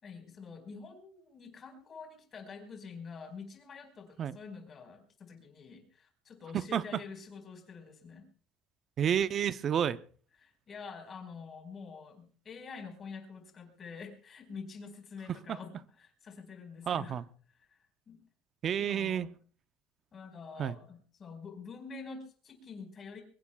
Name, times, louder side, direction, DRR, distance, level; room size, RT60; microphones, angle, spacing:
voice 1, 0.0-8.3 10.4-17.2 17.6-17.8 18.1-18.2 18.8-19.4 20.1-23.2, left 5 dB, 30° left, 4 dB, 4.7 m, -47 dB
voice 2, 9.0-10.0 16.9-17.2 18.6-19.3 20.6-20.7, right 9 dB, 35° right, 14 dB, 0.6 m, -30 dB
24.0 x 22.0 x 2.3 m, 0.42 s
cardioid pair, 155°, 0 cm